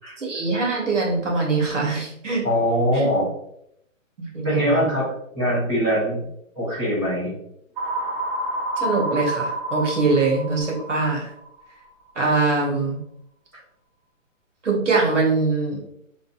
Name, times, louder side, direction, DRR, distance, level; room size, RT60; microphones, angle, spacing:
voice 1, 0.2-2.4 2.9-3.1 4.2-4.9 8.8-11.3 12.1-13.0 14.6-15.8, right 3 dB, 65° right, -1 dB, 1.3 m, -23 dB
voice 2, 2.4-3.3 4.4-6.2 6.5-7.3, equal, 5° right, -16 dB, 0.9 m, -22 dB
sound 1, 7.8-11.6, right 1 dB, 40° right, 1.2 m, -29 dB
4.5 x 2.6 x 2.3 m, 0.75 s
hypercardioid pair, 170°, 40 cm